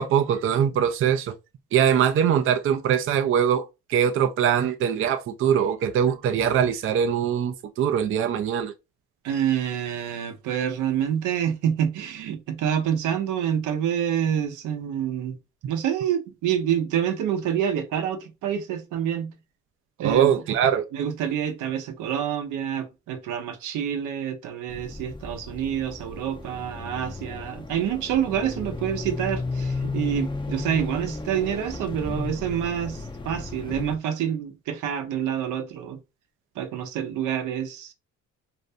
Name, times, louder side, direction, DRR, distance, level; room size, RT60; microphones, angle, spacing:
voice 1, 0.0-1.4 1.7-8.7 20.0-20.9, right 8 dB, 45° right, 0.4 m, -22 dB
voice 2, 9.2-15.4 15.6-19.3 20.0-20.3 20.9-36.0 36.6-37.9, right 9 dB, 85° right, 0.6 m, -27 dB
sound 1, 24.7-34.0, left 3 dB, 15° left, 0.5 m, -34 dB
2.6 x 2.1 x 2.5 m
cardioid pair, 90°, 30 cm